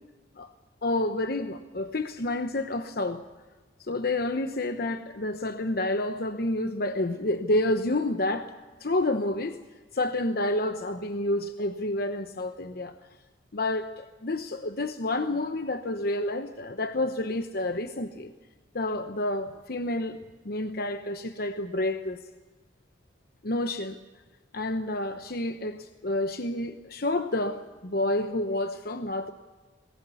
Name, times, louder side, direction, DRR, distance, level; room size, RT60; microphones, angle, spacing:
voice 1, 0.8-3.2 3.9-8.5 8.8-9.6 9.9-12.9 13.5-18.3 18.7-20.2 20.4-22.2 23.4-24.0 24.5-29.3, left 1 dB, 55° left, 8 dB, 1.0 m, -29 dB
22.0 x 19.0 x 8.3 m, 1.3 s
head